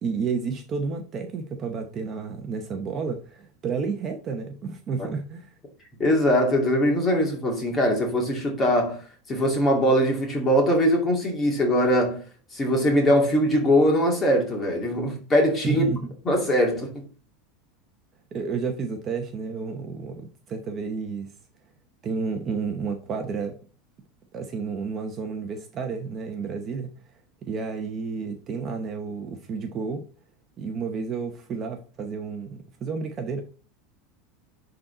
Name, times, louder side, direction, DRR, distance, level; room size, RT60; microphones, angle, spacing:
voice 1, 0.0-5.5 15.6-16.1 18.3-21.3 22.0-23.5 24.3-26.9 27.4-30.0 30.6-33.4, right 5 dB, 25° right, 0.9 m, -31 dB
voice 2, 6.0-9.0 9.3-12.2 12.5-15.8 16.2-16.9, equal, 20° left, 2.4 m, -21 dB
10.5 x 4.0 x 3.9 m
supercardioid pair, 160°, 0 cm